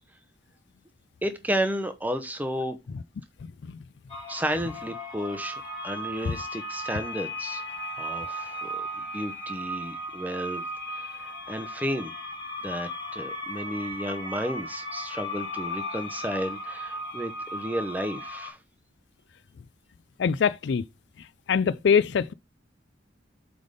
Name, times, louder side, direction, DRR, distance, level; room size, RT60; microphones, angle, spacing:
voice 1, 1.2-2.8 4.3-7.6 8.0-10.6 10.9-12.1 12.6-18.6, equal, 10° right, 0.8 m, -32 dB
sound 1, 4.1-18.5, equal, 25° left, 2.8 m, -36 dB
voice 2, 20.2-20.8 21.5-22.3, left 6 dB, 60° left, 0.3 m, -23 dB
7.9 x 3.6 x 5.1 m
head